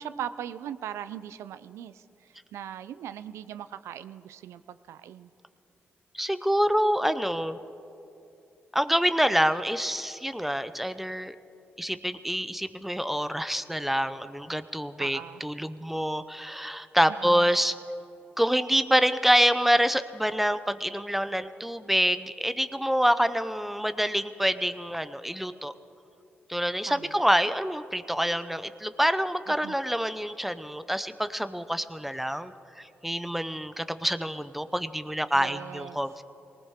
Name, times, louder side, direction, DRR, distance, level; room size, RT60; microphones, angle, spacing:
voice 1, 0.0-5.3 15.0-15.4 17.1-17.5 26.8-27.2 29.5-29.7 35.3-36.0, right 10 dB, 85° right, 14 dB, 0.4 m, -40 dB
voice 2, 6.1-7.6 8.7-11.4 11.8-17.7 18.4-25.7 26.5-36.2, equal, 5° right, 12 dB, 0.7 m, -26 dB
20.0 x 19.0 x 3.6 m, 2.7 s
cardioid pair, 60°, 5 cm